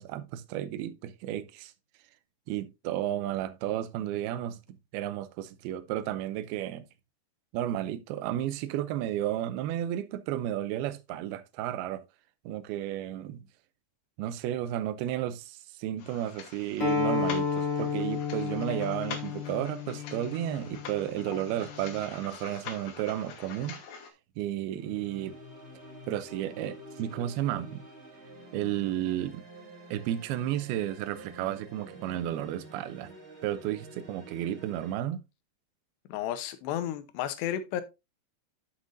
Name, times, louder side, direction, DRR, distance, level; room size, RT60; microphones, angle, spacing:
voice 1, 0.0-1.7 2.5-6.9 7.5-12.0 12.5-13.4 14.2-23.8 24.4-25.4 26.1-27.8 28.5-29.4 29.9-33.1 33.4-35.2, right 12 dB, 80° right, 2.4 m, -33 dB
sound 1, 16.0-24.1, left 7 dB, 65° left, 2.7 m, -45 dB
Acoustic guitar, 16.8-22.0, left 6 dB, 45° left, 2.1 m, -32 dB
sound 2, 24.7-34.9, right 1 dB, 25° right, 1.7 m, -48 dB
voice 2, 36.1-37.8, left 11 dB, 80° left, 3.0 m, -32 dB
11.5 x 5.9 x 2.6 m
omnidirectional pair, 4.9 m